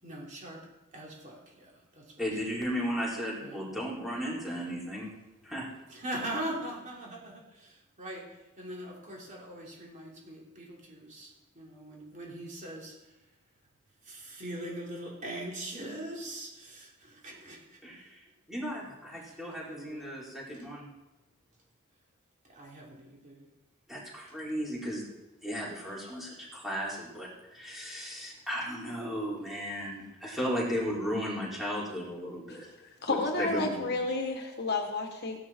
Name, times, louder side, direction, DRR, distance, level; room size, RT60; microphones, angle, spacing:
voice 1, 0.0-2.2 3.4-3.6 5.9-13.2 14.0-17.8 19.1-19.4 19.7-20.2 22.4-23.5, right 1 dB, 35° right, -3 dB, 3.4 m, -41 dB
voice 2, 2.2-5.1 5.4-5.7 17.8-18.2 18.5-20.9 23.9-25.1 25.4-32.7 33.1-33.9, equal, ahead, -6 dB, 4.2 m, -35 dB
voice 3, 33.0-35.4, left 3 dB, 50° left, 4 dB, 1.4 m, -31 dB
16.0 x 11.0 x 4.4 m, 1.0 s
head